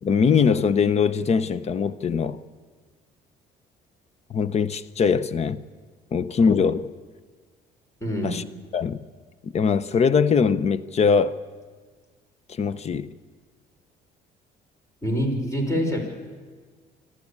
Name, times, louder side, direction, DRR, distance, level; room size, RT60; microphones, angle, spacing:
voice 1, 0.0-2.4 4.3-5.6 6.1-6.9 8.2-8.4 8.7-9.0 9.4-11.4 12.6-13.1, left 6 dB, 40° left, 0.8 m, -22 dB
voice 2, 8.0-8.4 15.0-16.0, equal, 20° left, 5.3 m, -25 dB
26.5 x 13.0 x 8.6 m
cardioid pair, 110°, 17 cm